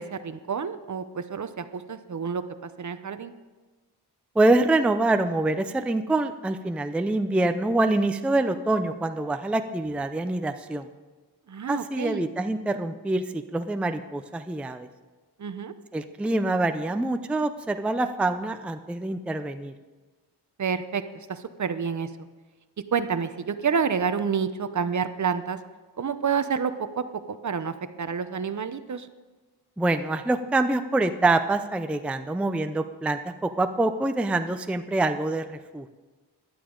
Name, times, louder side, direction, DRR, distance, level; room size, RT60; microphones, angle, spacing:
voice 1, 0.0-3.3 11.5-12.2 15.4-15.7 20.6-21.0 21.3-22.1 22.9-25.6 26.0-29.1, right 6 dB, 45° right, 11 dB, 0.7 m, -29 dB
voice 2, 4.4-10.9 11.7-14.9 15.9-19.7 29.8-35.9, right 2 dB, 5° right, 8 dB, 0.4 m, -25 dB
15.5 x 11.5 x 3.8 m, 1.3 s
wide cardioid pair, 115°, 41 cm